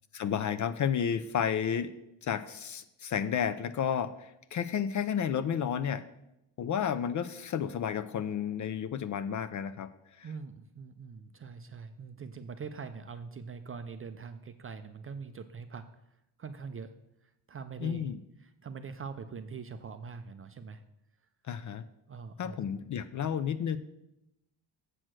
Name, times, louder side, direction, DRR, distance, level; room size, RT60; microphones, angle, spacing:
voice 1, 0.1-1.9 2.2-6.0 6.6-9.9 10.2-10.3 17.8-18.2 21.5-21.8 22.4-23.8, left 8 dB, 40° left, 13 dB, 0.4 m, -31 dB
voice 2, 10.2-16.9 17.2-18.1 18.4-20.8 22.1-22.6 23.2-23.3, right 5 dB, 30° right, 9 dB, 0.4 m, -43 dB
7.7 x 6.3 x 6.1 m, 0.87 s
cardioid pair, 130°, 46 cm